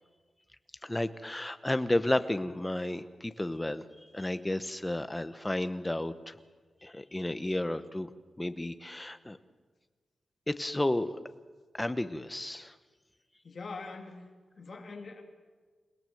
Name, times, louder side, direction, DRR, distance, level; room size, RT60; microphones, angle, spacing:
voice 1, 0.8-3.8 4.1-6.4 6.8-8.1 8.4-9.4 10.5-11.1 11.7-12.8, left 1 dB, 10° left, 11 dB, 0.9 m, -32 dB
voice 2, 13.4-14.3 14.6-15.2, left 3 dB, 45° left, 3 dB, 2.9 m, -43 dB
28.0 x 18.5 x 7.8 m, 1.4 s
wide cardioid pair, 145°, 0 cm